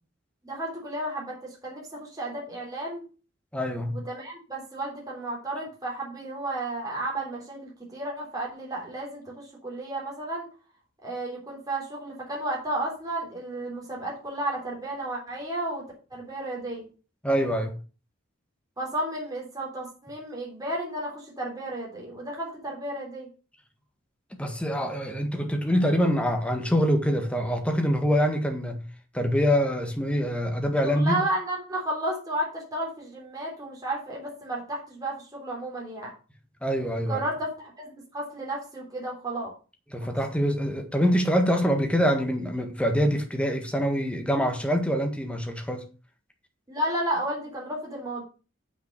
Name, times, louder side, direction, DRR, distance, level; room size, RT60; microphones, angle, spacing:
voice 1, 0.4-3.1 3.9-10.5 11.0-15.8 16.1-16.9 18.8-23.3 30.8-36.1 37.1-39.5 40.0-40.1 46.7-48.2, right 1 dB, 20° right, 3.5 m, -33 dB
voice 2, 3.5-4.0 17.2-17.7 24.4-28.8 29.1-31.2 36.6-37.2 39.9-45.8, equal, 5° left, 1.6 m, -25 dB
7.4 x 6.1 x 6.6 m
head